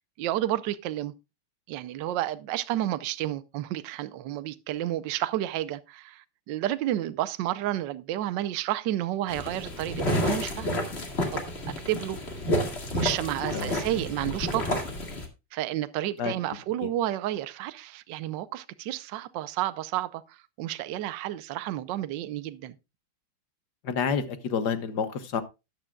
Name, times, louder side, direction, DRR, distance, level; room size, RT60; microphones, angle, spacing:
voice 1, 0.2-1.1 1.7-10.8 11.3-11.4 11.9-12.2 12.9-14.8 15.5-22.7, right 13 dB, 70° right, 1.2 m, -31 dB
sound 1, 9.3-15.3, left 1 dB, 30° left, 2.0 m, -30 dB
voice 2, 23.8-25.4, left 6 dB, 55° left, 1.5 m, -29 dB
13.0 x 10.0 x 2.3 m
omnidirectional pair, 2.4 m